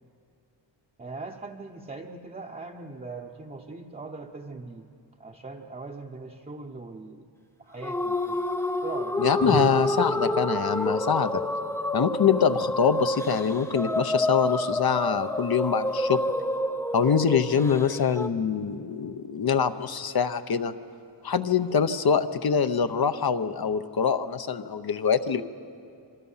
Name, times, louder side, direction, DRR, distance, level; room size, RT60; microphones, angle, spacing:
voice 1, 1.0-4.9 5.2-7.2 7.6-8.4 8.8-9.8, right 3 dB, 20° right, -1 dB, 0.9 m, -39 dB
sound 1, 7.8-18.3, left 1 dB, 5° left, 0.6 m, -28 dB
voice 2, 9.2-11.4 11.9-16.2 16.9-20.7 21.2-25.4, left 7 dB, 55° left, 10 dB, 0.8 m, -24 dB
27.0 x 24.5 x 5.7 m, 2.5 s
wide cardioid pair, 160°, 45 cm